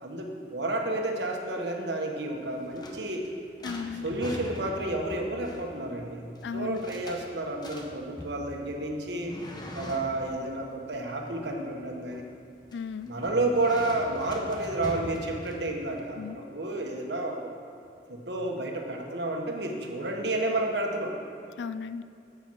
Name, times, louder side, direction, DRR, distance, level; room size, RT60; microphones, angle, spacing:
voice 1, 0.0-3.3 4.0-6.2 6.5-9.4 9.7-12.3 13.0-17.5 18.1-21.2, right 2 dB, 70° right, 1 dB, 1.5 m, -31 dB
sound 1, 2.3-16.0, left 1 dB, 25° left, 1.1 m, -43 dB
voice 2, 3.6-4.2 6.4-6.8 12.7-13.1 16.2-16.4 21.6-22.0, left 5 dB, 85° left, 14 dB, 0.4 m, -35 dB
9.8 x 8.1 x 6.4 m, 2.5 s
head